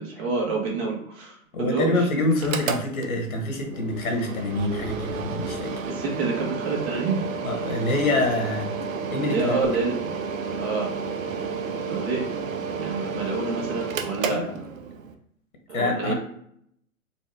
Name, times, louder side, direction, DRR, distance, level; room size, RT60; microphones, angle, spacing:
voice 1, 0.0-2.3 5.9-7.2 9.3-10.1 10.6-10.9 11.9-12.3 12.8-14.4 15.7-16.1, right 4 dB, 45° right, -1 dB, 1.5 m, -28 dB
voice 2, 1.5-5.8 7.4-8.7 9.1-9.5 14.3-14.5 15.7-16.1, left 2 dB, 75° left, 2 dB, 1.4 m, -26 dB
Mechanical fan, 2.3-15.1, right 5 dB, 65° right, 0.7 m, -31 dB
4.3 x 2.3 x 3.4 m, 0.70 s
figure-of-eight pair, 110°, 43 cm